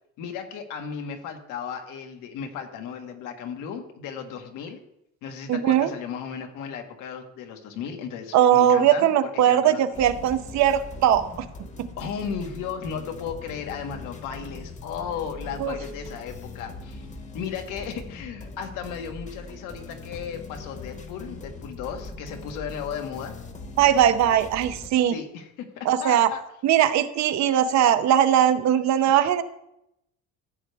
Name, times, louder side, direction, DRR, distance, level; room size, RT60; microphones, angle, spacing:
voice 1, 0.2-4.8 5.2-9.1 9.5-9.8 12.0-17.1 17.3-23.3 25.1-26.4, left 7 dB, 80° left, 4 dB, 1.7 m, -35 dB
voice 2, 5.5-5.9 8.3-11.5 11.8-11.9 15.6-15.7 23.8-25.2 25.8-26.3 26.6-29.4, right 10 dB, 65° right, 11 dB, 0.9 m, -20 dB
sound 1, 9.9-24.9, left 2 dB, 25° left, 1.1 m, -41 dB
14.5 x 8.1 x 3.5 m, 0.81 s
cardioid pair, 150°, 31 cm